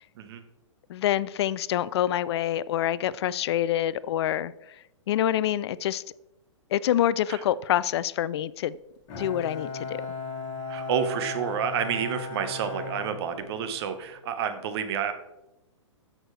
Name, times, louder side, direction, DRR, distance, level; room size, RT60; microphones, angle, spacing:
voice 1, 0.9-4.5 5.1-6.0 6.7-8.8 9.2-10.0, left 11 dB, 55° left, 19 dB, 0.4 m, -26 dB
Bowed string instrument, 9.1-13.9, left 3 dB, 40° left, 2.5 m, -36 dB
voice 2, 10.7-15.1, right 7 dB, 55° right, 8 dB, 1.3 m, -29 dB
13.5 x 6.2 x 3.3 m, 0.93 s
hypercardioid pair, 125°, 16 cm